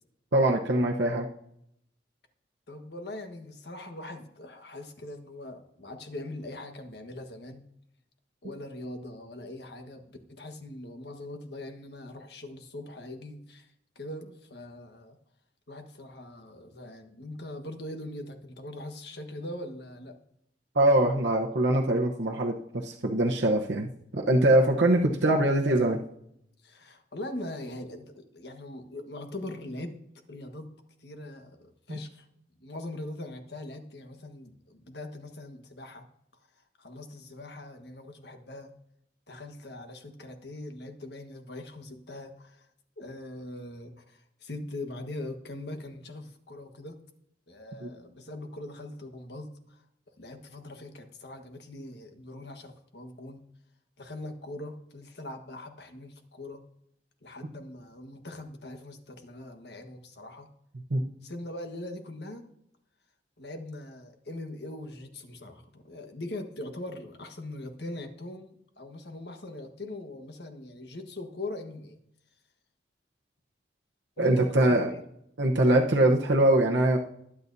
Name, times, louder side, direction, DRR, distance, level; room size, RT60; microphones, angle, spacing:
voice 1, 0.3-1.3 20.7-26.0 31.9-32.0 47.8-47.9 60.9-61.0 74.2-74.9 75.4-77.0, right 1 dB, 85° right, -1 dB, 1.0 m, -23 dB
voice 2, 2.7-7.6 8.4-15.2 15.7-20.2 26.6-29.9 30.3-30.7 31.0-32.3 32.6-36.0 36.8-38.7 39.3-42.7 43.0-47.0 47.5-49.8 50.2-53.4 54.0-56.6 57.2-60.5 61.2-62.5 63.4-72.0 74.2-75.0, left 1 dB, 70° left, 6 dB, 1.4 m, -41 dB
21.0 x 8.7 x 2.7 m, 0.76 s
head